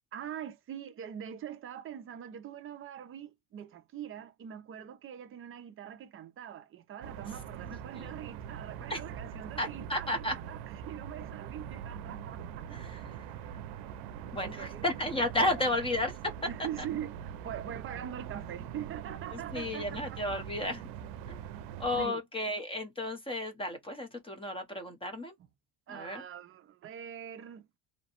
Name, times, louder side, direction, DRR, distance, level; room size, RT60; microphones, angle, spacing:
voice 1, 0.1-12.7 14.4-14.9 15.4-15.6 16.5-20.2 22.0-22.2 25.4-25.5 25.9-27.6, right 9 dB, 35° right, 0.5 m, -43 dB
sound 1, 7.0-22.1, right 9 dB, 90° right, 0.5 m, -43 dB
voice 2, 9.6-10.3 12.7-13.0 14.3-16.1 19.3-20.9 21.3-21.4 21.8-25.3 25.9-26.2, left 1 dB, 15° left, 0.7 m, -33 dB
2.8 x 2.1 x 2.8 m
cardioid pair, 140°, 40 cm